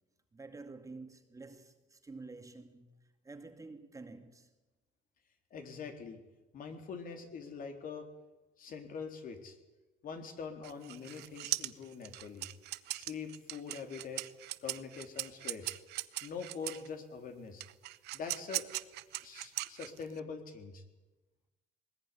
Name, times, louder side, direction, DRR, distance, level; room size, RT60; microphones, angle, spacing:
voice 1, 0.3-3.0 3.2-4.5, right 3 dB, 20° right, 2.3 m, -49 dB
voice 2, 5.5-6.2 6.5-8.1 8.6-9.6 10.0-12.5 12.9-14.2 14.6-15.8 16.2-17.6 18.1-18.6 19.2-20.8, left 5 dB, 55° left, 3.8 m, -44 dB
sound 1, 10.6-16.9 17.6-20.2, right 17 dB, 80° right, 0.9 m, -39 dB
20.5 x 20.0 x 10.0 m
cardioid pair, 110°, 17 cm